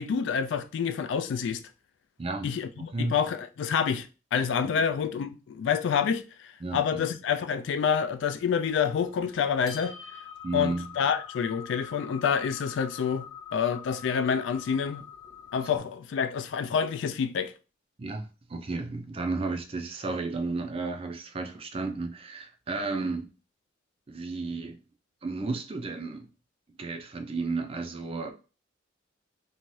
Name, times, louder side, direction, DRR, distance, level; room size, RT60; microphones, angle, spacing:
voice 1, 0.0-1.6 2.4-9.9 10.5-13.3 13.5-15.0 15.5-17.5, left 7 dB, 65° left, 0.3 m, -28 dB
voice 2, 6.6-7.0 10.4-10.9 18.0-23.3 24.1-24.8 25.2-26.3 26.8-28.3, right 3 dB, 30° right, 0.4 m, -33 dB
sound 1, 8.6-15.8, left 7 dB, 20° left, 0.6 m, -45 dB
2.7 x 2.3 x 3.1 m
head